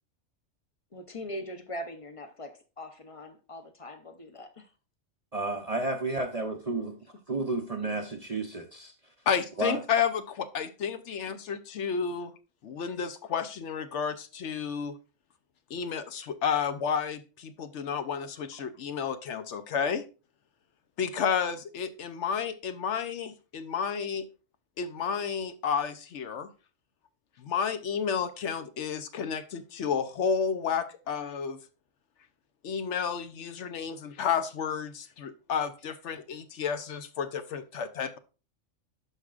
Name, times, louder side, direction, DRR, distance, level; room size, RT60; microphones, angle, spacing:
voice 1, 0.9-4.7 7.7-7.9 11.3-11.4, equal, 30° left, 0.7 m, -41 dB
voice 2, 5.3-7.0 7.3-8.9 9.6-9.8 18.5-18.6, right 2 dB, 40° right, 0.6 m, -31 dB
voice 3, 9.3-12.3 12.6-15.0 15.7-20.0 21.0-24.3 24.8-26.5 27.4-31.6 32.6-38.2, left 7 dB, 70° left, 0.9 m, -31 dB
12.0 x 4.8 x 2.4 m
omnidirectional pair, 1.3 m